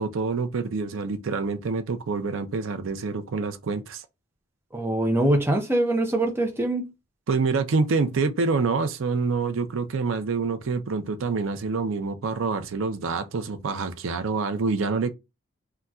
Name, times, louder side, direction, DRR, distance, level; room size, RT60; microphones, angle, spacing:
voice 1, 0.0-4.0 7.3-15.1, right 4 dB, 75° right, 0.5 m, -26 dB
voice 2, 4.7-6.9, right 1 dB, 10° right, 0.4 m, -23 dB
3.8 x 2.2 x 2.3 m
head